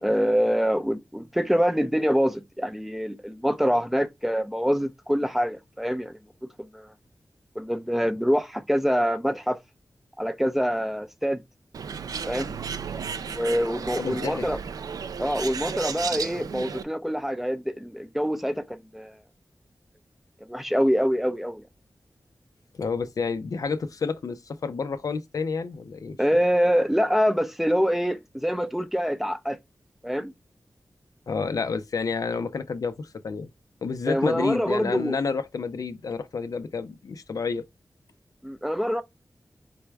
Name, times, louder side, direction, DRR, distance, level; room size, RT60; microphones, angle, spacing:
voice 1, 0.0-6.2 6.7-6.9 7.6-9.6 10.2-11.4 12.3-12.6 13.3-14.6 15.2-19.1 20.5-21.6 26.2-29.6 30.0-30.3 34.1-35.2 38.4-39.0, equal, 5° right, 0.5 m, -25 dB
Bird, 11.7-16.8, right 6 dB, 90° right, 0.4 m, -34 dB
voice 2, 14.0-14.6 22.7-26.2 31.3-33.5 33.8-37.6, left 5 dB, 70° left, 0.5 m, -29 dB
4.2 x 3.4 x 3.4 m
wide cardioid pair, 100°, 6 cm